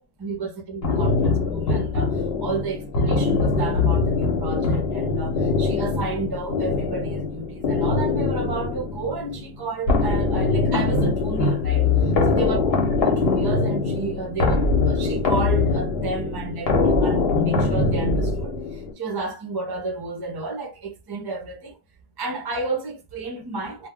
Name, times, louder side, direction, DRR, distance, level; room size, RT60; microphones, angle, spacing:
voice 1, 0.2-21.8 22.2-23.9, right 3 dB, 30° right, 0.5 m, -32 dB
sound 1, 0.8-18.9, left 3 dB, 70° left, 1.1 m, -22 dB
2.2 x 2.2 x 3.5 m
omnidirectional pair, 1.1 m